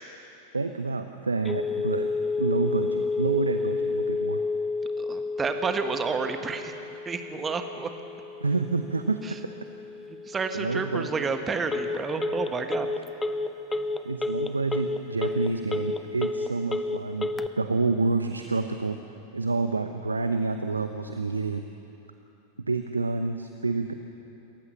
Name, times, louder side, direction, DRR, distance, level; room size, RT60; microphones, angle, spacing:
voice 1, 0.5-2.1 2.4-4.4 8.4-9.2 10.5-11.1 13.7-19.0 19.3-21.6 22.7-23.9, right 3 dB, 80° right, 8 dB, 0.8 m, -28 dB
Telephone, 1.4-17.5, left 3 dB, 15° left, 0.8 m, -31 dB
voice 2, 5.0-6.8 7.0-7.9 9.2-9.3 10.3-12.9, right 5 dB, 20° right, 7 dB, 1.6 m, -30 dB
28.0 x 15.0 x 6.8 m, 2.9 s
figure-of-eight pair, 90°, 0 cm